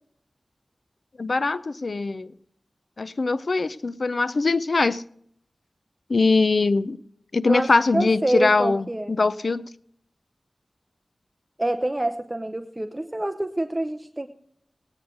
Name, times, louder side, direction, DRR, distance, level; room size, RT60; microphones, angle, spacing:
voice 1, 1.2-2.3 3.0-5.0 6.1-7.0 7.3-9.7, left 3 dB, 65° left, 16 dB, 0.5 m, -22 dB
voice 2, 7.5-9.1 11.6-14.3, right 1 dB, 25° right, 9 dB, 0.8 m, -26 dB
18.0 x 9.6 x 3.8 m, 0.67 s
wide cardioid pair, 60°, 0 cm